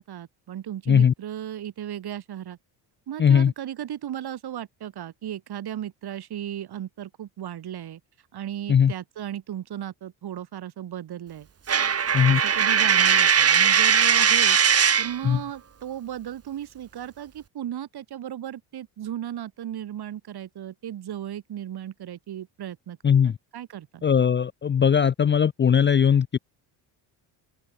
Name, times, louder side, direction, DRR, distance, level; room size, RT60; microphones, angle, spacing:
voice 1, 0.0-2.6 3.1-8.0 8.3-11.5 12.3-14.6 15.0-24.0, right 11 dB, 50° right, 3.3 m, -35 dB
voice 2, 3.2-3.5 8.7-8.9 12.1-12.4 15.2-15.4 23.0-23.3 24.0-26.4, left 7 dB, 25° left, 0.6 m, -19 dB
Coin (dropping), 11.7-15.2, right 7 dB, 30° right, 1.7 m, -19 dB
open air
cardioid pair, 105°, 47 cm